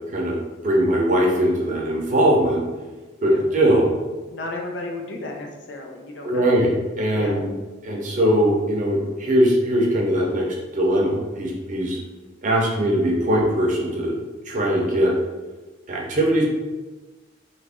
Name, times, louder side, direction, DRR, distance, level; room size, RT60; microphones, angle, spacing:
voice 1, 0.6-2.6 3.2-3.9 6.2-7.5 7.8-10.5 10.7-12.0 12.4-14.2 14.5-15.1 15.9-16.4, equal, 40° right, -2 dB, 0.7 m, -20 dB
voice 2, 4.3-6.6 7.1-7.4, left 2 dB, 65° left, 1 dB, 0.6 m, -33 dB
3.0 x 2.5 x 3.5 m, 1.2 s
head